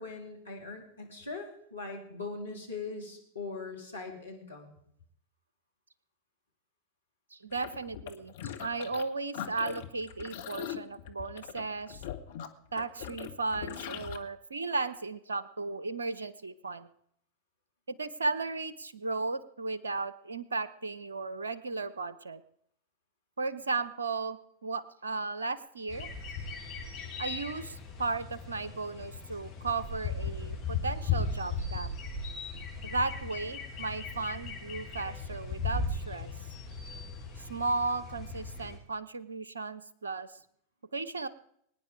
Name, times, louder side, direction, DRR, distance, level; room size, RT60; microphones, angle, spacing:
voice 1, 0.0-4.8, left 3 dB, 80° left, 1 dB, 2.8 m, -41 dB
voice 2, 7.3-12.0 12.7-16.9 17.9-22.4 23.4-26.1 27.2-31.9 32.8-36.3 37.4-40.3 40.9-41.3, right 3 dB, 75° right, 17 dB, 0.9 m, -35 dB
sound 1, 7.5-9.1 9.3-14.2, left 10 dB, 55° left, 1.3 m, -41 dB
sound 2, 25.9-38.8, left 4 dB, 40° left, 7.0 m, -37 dB
23.0 x 9.8 x 5.0 m, 0.71 s
figure-of-eight pair, 90°, 0 cm